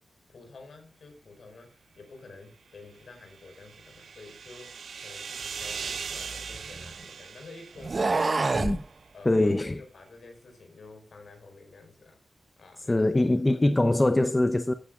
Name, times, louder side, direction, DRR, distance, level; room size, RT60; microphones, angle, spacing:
voice 1, 0.3-8.4 9.1-12.2 12.6-14.0, left 3 dB, 70° left, 5.0 m, -49 dB
sound 1, 3.0-8.6, right 6 dB, 80° right, 0.5 m, -40 dB
sound 2, 5.5-7.0 7.8-8.8, right 3 dB, 40° right, 0.7 m, -28 dB
voice 2, 9.2-9.8 12.9-14.7, left 2 dB, 20° left, 0.7 m, -23 dB
14.5 x 9.5 x 2.4 m
wide cardioid pair, 90°, 0 cm